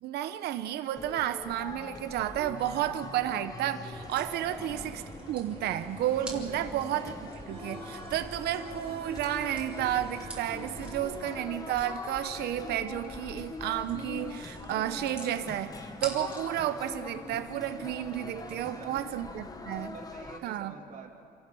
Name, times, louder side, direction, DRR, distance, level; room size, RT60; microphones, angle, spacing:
voice 1, 0.0-19.9 20.4-20.7, right 12 dB, 75° right, 9 dB, 1.0 m, -32 dB
sound 1, 1.0-20.4, left 3 dB, 20° left, 1.3 m, -43 dB
sound 2, 2.4-18.5, right 2 dB, 5° right, 4.6 m, -50 dB
sound 3, 3.9-11.2, right 3 dB, 35° right, 2.6 m, -47 dB
voice 2, 6.3-6.9 18.4-19.0 19.9-21.1, right 6 dB, 50° right, 1 dB, 3.1 m, -48 dB
29.0 x 15.0 x 6.3 m, 2.7 s
cardioid pair, 110°, 17 cm